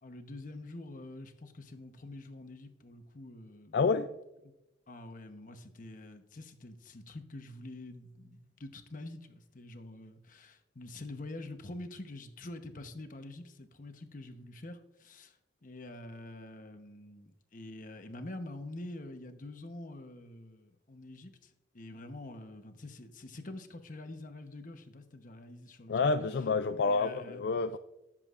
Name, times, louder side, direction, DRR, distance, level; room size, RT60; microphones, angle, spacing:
voice 1, 0.0-3.8 4.4-4.5 4.9-26.1 26.8-27.4, left 2 dB, 50° left, 1.0 m, -46 dB
voice 2, 3.7-4.1 25.9-27.8, left 4 dB, 65° left, 0.4 m, -28 dB
19.0 x 7.5 x 2.5 m
head